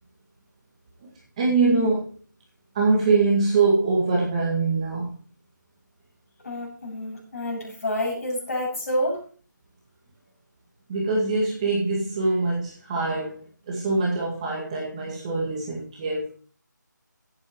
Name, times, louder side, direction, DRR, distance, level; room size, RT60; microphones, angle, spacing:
voice 1, 1.4-2.1 2.7-5.1 10.9-16.3, right 3 dB, 20° right, 2.1 m, -23 dB
voice 2, 6.4-9.2, left 1 dB, 45° left, 6.9 m, -28 dB
18.0 x 8.9 x 3.1 m
figure-of-eight pair, 165°, 10 cm